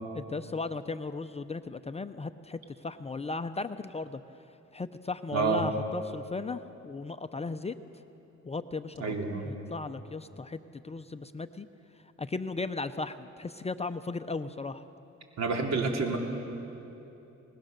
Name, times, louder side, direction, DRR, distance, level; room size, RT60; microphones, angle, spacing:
voice 1, 0.1-4.2 4.7-7.8 8.4-9.1 9.4-11.7 12.2-14.8, left 3 dB, 20° left, 10 dB, 0.6 m, -36 dB
voice 2, 5.3-5.6 9.0-9.4 15.4-16.2, right 4 dB, 60° right, 1 dB, 3.3 m, -28 dB
24.5 x 20.0 x 6.7 m, 2.9 s
cardioid pair, 90°, 30 cm